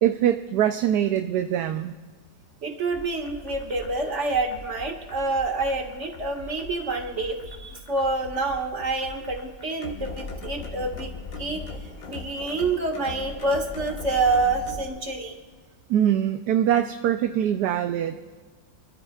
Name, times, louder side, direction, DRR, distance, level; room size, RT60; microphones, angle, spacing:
voice 1, 0.0-1.9 15.9-18.2, right 10 dB, 75° right, 7 dB, 1.2 m, -23 dB
voice 2, 2.6-11.1 11.4-15.3, right 3 dB, 45° right, 3 dB, 2.0 m, -27 dB
sound 1, 2.9-14.9, left 3 dB, 55° left, 1.7 m, -40 dB
26.5 x 13.0 x 2.4 m, 1.4 s
omnidirectional pair, 1.9 m